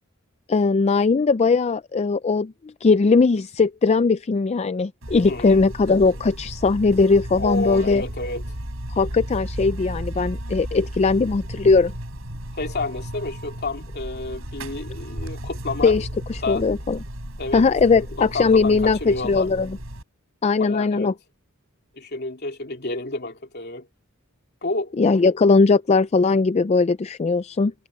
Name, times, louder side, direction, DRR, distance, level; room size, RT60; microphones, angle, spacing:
voice 1, 0.5-8.0 9.0-11.9 15.8-17.0 17.5-19.8 20.4-21.1 25.0-27.7, left 4 dB, 30° left, 0.4 m, -19 dB
Buzz, 5.0-20.0, right 1 dB, 80° right, 5.0 m, -34 dB
voice 2, 5.3-5.6 7.4-8.4 12.6-16.0 16.4-16.7 17.4-17.6 18.2-19.5 20.6-21.1 22.0-23.9 24.6-25.0, left 3 dB, 55° left, 2.8 m, -30 dB
head